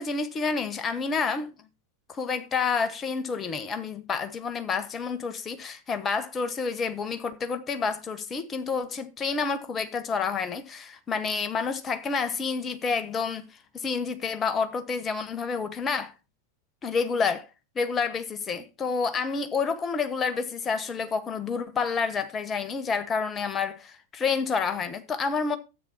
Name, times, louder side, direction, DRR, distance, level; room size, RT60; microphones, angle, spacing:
voice 1, 0.0-1.5 2.1-13.4 13.7-16.1 16.8-17.5 17.7-25.6, left 5 dB, 20° left, 1.1 m, -29 dB
13.0 x 8.5 x 2.8 m
figure-of-eight pair, 90°, 0 cm